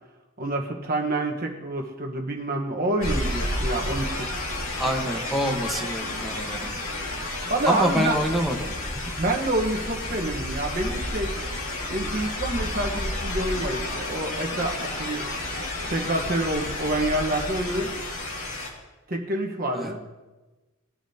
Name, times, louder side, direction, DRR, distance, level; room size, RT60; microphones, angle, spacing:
voice 1, 0.4-4.3 7.5-8.2 9.2-11.3 11.9-15.2 15.9-17.9 19.1-20.0, right 1 dB, 45° right, 1 dB, 1.2 m, -27 dB
sound 1, 3.0-18.7, left 1 dB, 80° left, 2.2 m, -31 dB
voice 2, 4.8-6.7 7.7-8.6 19.7-19.9, equal, ahead, -1 dB, 1.1 m, -26 dB
19.0 x 10.0 x 2.8 m, 1.2 s
head